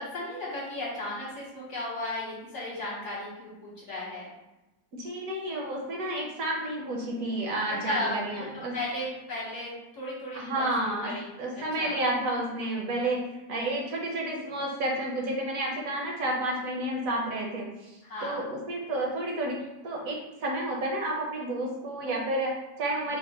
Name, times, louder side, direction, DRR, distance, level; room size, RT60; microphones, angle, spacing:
voice 1, 0.0-4.3 7.7-8.1 8.5-12.0 18.0-18.5, left 2 dB, 60° left, -6 dB, 1.2 m, -35 dB
voice 2, 4.9-8.8 10.3-23.2, right 1 dB, 65° right, -1 dB, 1.0 m, -31 dB
3.4 x 2.1 x 4.0 m, 1.0 s
omnidirectional pair, 1.7 m